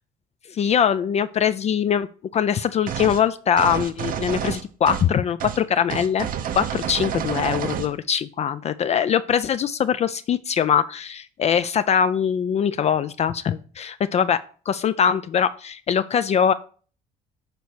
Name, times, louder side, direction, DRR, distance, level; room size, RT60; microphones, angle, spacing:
voice 1, 0.5-6.3 6.5-14.4 14.7-16.5, left 8 dB, 40° left, 12 dB, 0.4 m, -22 dB
sound 1, 2.9-3.2 3.6-5.1 5.4-5.6 5.9-7.9, right 9 dB, 55° right, 0.7 m, -29 dB
6.7 x 4.1 x 6.2 m, 0.41 s
cardioid pair, 110°, 17 cm